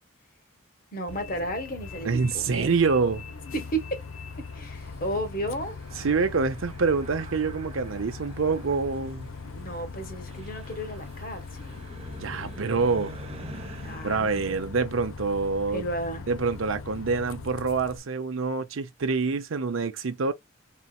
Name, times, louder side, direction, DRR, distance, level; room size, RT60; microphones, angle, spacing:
voice 1, 0.9-2.7 3.5-4.0 4.4-5.8 9.4-11.8 13.8-14.7 15.7-16.3, right 1 dB, 45° left, 1.4 m, -33 dB
Bus, 1.1-18.0, left 4 dB, 90° left, 0.7 m, -40 dB
voice 2, 2.0-3.2 6.0-9.3 12.2-13.1 14.0-15.8 16.3-20.3, right 4 dB, 80° right, 0.6 m, -26 dB
sound 1, 2.3-16.1, right 2 dB, 30° right, 0.7 m, -48 dB
4.3 x 3.9 x 2.3 m
head